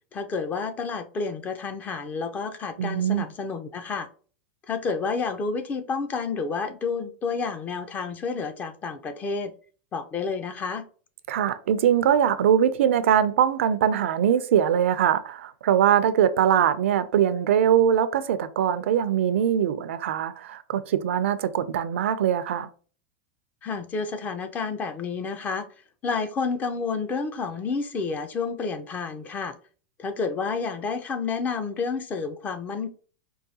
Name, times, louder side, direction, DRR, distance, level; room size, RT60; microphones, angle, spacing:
voice 1, 0.1-4.1 4.7-9.5 9.9-10.9 23.6-25.7 26.0-29.6 30.0-32.9, left 4 dB, 25° left, 0.5 m, -30 dB
voice 2, 2.8-3.3 11.3-22.7, right 9 dB, 80° right, 0.4 m, -22 dB
4.6 x 2.3 x 2.7 m
supercardioid pair, 130°, 7 cm